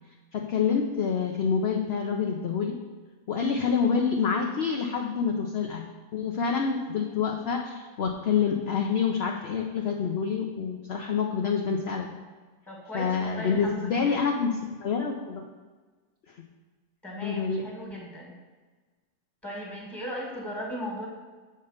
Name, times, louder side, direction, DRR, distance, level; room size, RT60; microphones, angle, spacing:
voice 1, 0.3-2.8 3.3-5.8 6.1-12.1 12.9-14.5 14.8-15.4 17.2-17.7, left 6 dB, 60° left, 2 dB, 0.7 m, -27 dB
voice 2, 12.7-14.2 17.0-18.3 19.4-21.1, equal, ahead, -3 dB, 1.7 m, -37 dB
7.7 x 3.8 x 6.4 m, 1.3 s
omnidirectional pair, 1.7 m